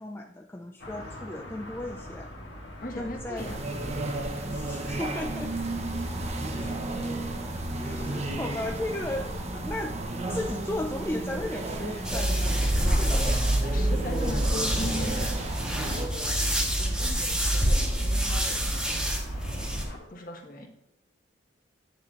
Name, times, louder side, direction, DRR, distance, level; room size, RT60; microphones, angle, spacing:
voice 1, 0.0-2.3 2.9-3.6 4.5-5.5 6.4-6.8 7.8-10.0 10.3-13.2, left 1 dB, 10° left, 2 dB, 0.3 m, -35 dB
sound 1, 0.8-20.0, left 1 dB, 65° left, 1.7 m, -44 dB
voice 2, 2.8-3.6 12.9-13.4 13.6-16.4 16.7-19.1 20.1-20.7, left 1 dB, 45° left, 1 dB, 1.3 m, -39 dB
sound 2, 3.4-16.1, right 2 dB, 35° right, 0.7 m, -33 dB
sound 3, 12.0-19.8, right 1 dB, 5° right, 1.3 m, -26 dB
9.5 x 6.8 x 2.4 m, 0.93 s
head